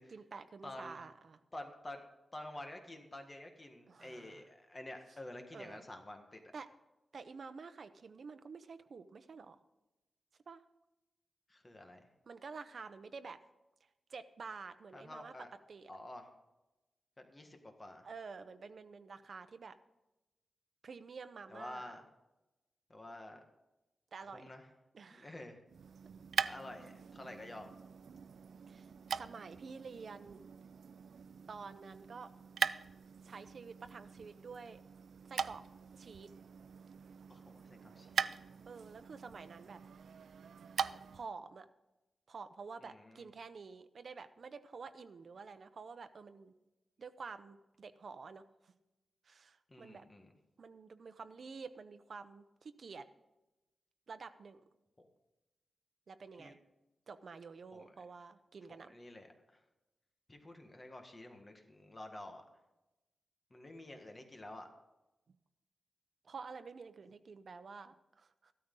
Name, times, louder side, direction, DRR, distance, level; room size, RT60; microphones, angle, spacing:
voice 1, 0.1-1.4 3.9-4.4 5.5-5.8 6.5-6.7 7.1-9.6 10.5-10.6 12.3-13.4 14.1-15.3 15.7-15.9 18.0-19.8 20.8-21.9 24.1-24.5 24.9-25.3 28.7-30.4 31.5-32.3 33.2-34.8 35.3-35.6 36.0-36.3 38.7-39.8 41.1-41.7 42.3-46.5 47.0-48.7 49.2-50.0 50.6-53.1 54.1-54.6 56.1-56.6 57.1-59.0 66.2-68.5, right 5 dB, 55° right, 10 dB, 0.8 m, -49 dB
voice 2, 0.6-1.0 1.5-2.0 2.3-6.4 11.5-12.0 14.9-15.5 15.9-16.3 17.2-18.1 21.5-22.0 22.9-23.4 24.3-24.7 25.1-25.6 26.4-27.7 37.3-38.2 42.8-43.3 49.7-50.3 55.0-55.1 56.4-56.6 57.7-57.9 58.8-59.6 60.3-62.4 63.5-64.7, left 1 dB, 25° left, 4 dB, 1.5 m, -49 dB
sound 1, 25.7-41.3, right 6 dB, 85° right, 0.3 m, -42 dB
14.5 x 13.0 x 3.8 m, 0.99 s
wide cardioid pair, 140°, 0 cm